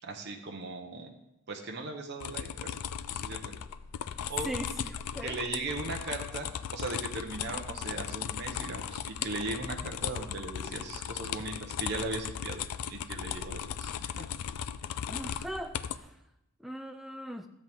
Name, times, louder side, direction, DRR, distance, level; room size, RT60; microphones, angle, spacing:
voice 1, 0.0-1.1 1.5-2.8 3.1-3.6 4.3-4.5 5.2-12.6 12.9-14.3, right 3 dB, 50° right, 0.9 m, -38 dB
sound 1, 2.2-16.0, left 8 dB, 90° left, 0.4 m, -37 dB
voice 2, 15.1-16.1 16.6-17.5, right 1 dB, ahead, 0.4 m, -39 dB
13.0 x 7.8 x 3.5 m
head